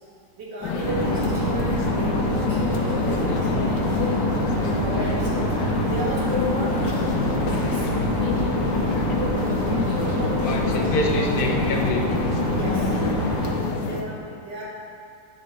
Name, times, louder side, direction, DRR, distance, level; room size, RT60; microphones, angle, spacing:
voice 1, 0.4-3.8 4.5-5.5 5.9-6.9 7.3-7.9 9.1-11.0 12.5-13.0 13.8-14.6, right 1 dB, 75° right, -6 dB, 2.6 m, -33 dB
sound 1, 0.6-14.0, left 4 dB, 90° left, 1.4 m, -27 dB
sound 2, 0.8-13.5, right 1 dB, 45° right, 2.9 m, -26 dB
voice 2, 10.4-12.0, left 2 dB, 40° left, 0 dB, 0.9 m, -26 dB
9.7 x 4.8 x 5.9 m, 2.3 s
omnidirectional pair, 1.9 m